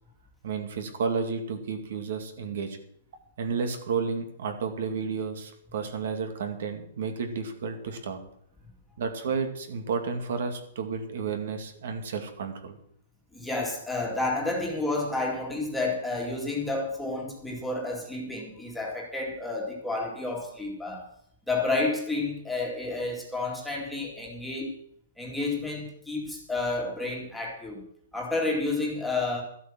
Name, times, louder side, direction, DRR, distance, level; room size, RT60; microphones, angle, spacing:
voice 1, 0.4-2.8 3.4-8.2 9.0-12.8, right 5 dB, 55° right, 6 dB, 2.2 m, -32 dB
voice 2, 13.3-21.1 21.5-24.8 25.2-27.8 28.1-29.4, left 2 dB, ahead, -2 dB, 2.3 m, -30 dB
13.0 x 8.3 x 7.5 m, 0.69 s
hypercardioid pair, 170°, 0 cm